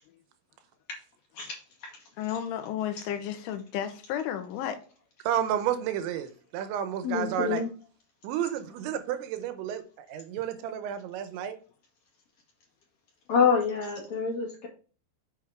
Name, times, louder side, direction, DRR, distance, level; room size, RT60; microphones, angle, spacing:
voice 1, 2.2-4.8, left 10 dB, 85° left, 3.5 m, -33 dB
voice 2, 5.2-7.6 8.2-11.6, right 10 dB, 80° right, 3.0 m, -31 dB
voice 3, 7.0-7.7 13.3-14.7, left 6 dB, 45° left, 2.7 m, -26 dB
7.9 x 6.1 x 3.6 m
omnidirectional pair, 5.5 m